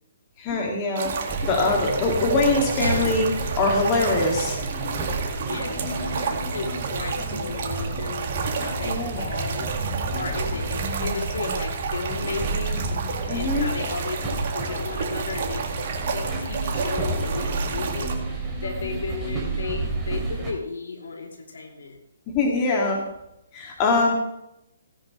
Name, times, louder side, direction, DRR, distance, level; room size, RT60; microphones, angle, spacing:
voice 1, 0.4-3.3 3.6-5.0 8.8-9.3 13.3-13.7 22.3-23.0 23.5-24.1, left 3 dB, 30° left, 0 dB, 2.3 m, -23 dB
sound 1, 1.0-18.1, right 6 dB, 50° right, 2.0 m, -31 dB
sound 2, 1.3-20.5, right 2 dB, 10° right, 3.1 m, -31 dB
sound 3, 2.8-7.4, right 3 dB, 85° right, 2.4 m, -35 dB
voice 2, 5.4-9.7 10.1-12.8 13.3-21.9, left 4 dB, 65° left, 0 dB, 3.0 m, -34 dB
17.0 x 9.9 x 3.2 m, 0.83 s
figure-of-eight pair, 135°, 0 cm